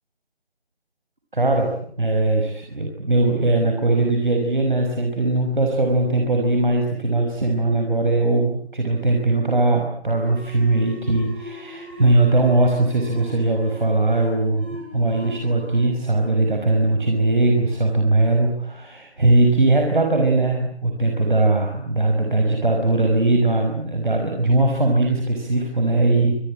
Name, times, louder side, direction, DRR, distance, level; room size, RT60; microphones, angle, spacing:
voice 1, 1.3-1.7 2.0-26.4, right 2 dB, 50° right, 2 dB, 5.5 m, -20 dB
sound 1, 10.1-17.4, right 1 dB, 10° right, 3.1 m, -39 dB
27.5 x 22.0 x 8.9 m, 0.63 s
figure-of-eight pair, 180°, 32 cm